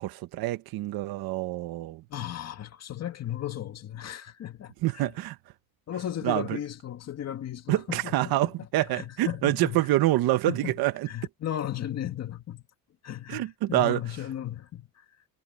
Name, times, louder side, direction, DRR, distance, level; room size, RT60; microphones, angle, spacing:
voice 1, 0.0-2.0 4.8-5.4 6.2-6.6 7.7-11.1 13.3-14.0, right 16 dB, 85° right, 1.4 m, -26 dB
voice 2, 2.1-5.1 5.9-8.5 8.9-9.8 10.5-10.7 11.1-12.6 13.0-15.0, left 11 dB, 45° left, 1.9 m, -35 dB
cardioid pair, 150°, 36 cm